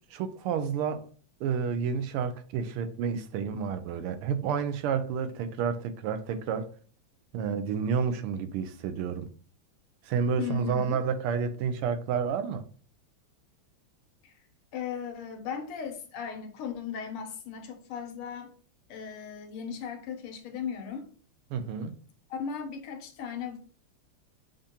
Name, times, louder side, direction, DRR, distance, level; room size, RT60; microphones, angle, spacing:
voice 1, 0.1-1.0 1.4-6.7 7.3-9.3 10.0-12.6 21.5-21.9, right 6 dB, 85° right, 1.5 m, -30 dB
voice 2, 10.4-11.0 14.2-14.3 14.7-18.5 18.9-21.1 22.3-23.6, left 7 dB, 85° left, 1.7 m, -37 dB
6.9 x 2.6 x 2.8 m
omnidirectional pair, 2.4 m